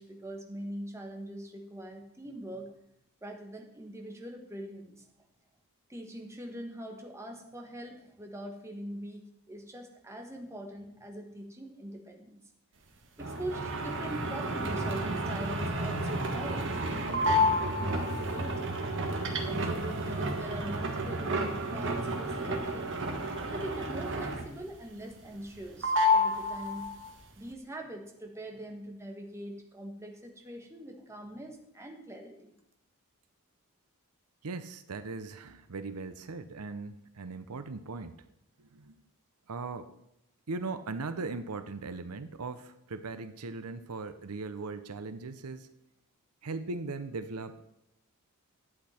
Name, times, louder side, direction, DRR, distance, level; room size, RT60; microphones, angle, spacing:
voice 1, 0.0-2.7 3.2-5.1 5.9-12.4 13.2-18.8 19.4-22.9 23.5-26.9 27.4-32.6, right 1 dB, 15° right, 2 dB, 1.4 m, -42 dB
sound 1, 13.2-24.7 25.0-25.6 25.8-27.1, equal, 55° right, 1.5 m, -30 dB
voice 2, 34.4-38.1 38.6-39.0 39.5-39.9 40.5-45.7 46.4-47.6, right 3 dB, 85° right, 11 dB, 0.7 m, -39 dB
11.0 x 8.3 x 4.3 m, 0.80 s
head